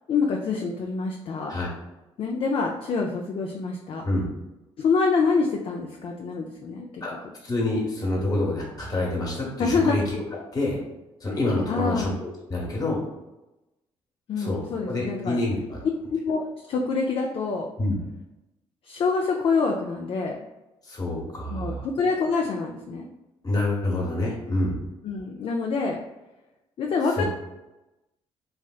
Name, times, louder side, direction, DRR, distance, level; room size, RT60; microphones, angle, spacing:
voice 1, 0.1-1.5 2.2-4.0 4.8-7.0 9.6-10.0 11.7-12.2 14.3-15.4 16.1-17.7 18.9-20.4 21.5-23.1 25.0-26.0 26.8-27.2, left 4 dB, 50° left, 1 dB, 0.4 m, -26 dB
voice 2, 7.4-10.2 10.5-10.8 11.2-13.0 14.4-15.8 17.8-18.0 20.8-21.8 23.4-24.8 27.2-27.3, left 2 dB, 35° left, -3 dB, 1.1 m, -27 dB
3.2 x 2.7 x 2.3 m, 0.98 s
cardioid pair, 85°, 11 cm